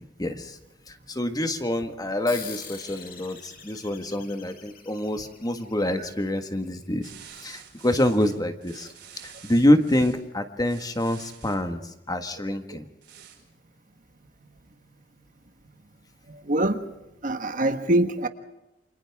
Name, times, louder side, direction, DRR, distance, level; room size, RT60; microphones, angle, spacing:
voice 1, 0.2-0.6 0.9-7.1 7.4-8.9 9.2-12.9, left 1 dB, 20° left, 7 dB, 1.7 m, -26 dB
sound 1, 2.3-7.2, left 7 dB, 55° left, 4.0 m, -45 dB
sound 2, 7.0-10.2 10.6-11.6 13.0-13.4, right 9 dB, 65° right, 5.0 m, -48 dB
voice 2, 16.3-16.8 17.2-18.3, right 1 dB, 45° right, 8 dB, 1.4 m, -24 dB
29.0 x 27.0 x 3.6 m, 0.93 s
head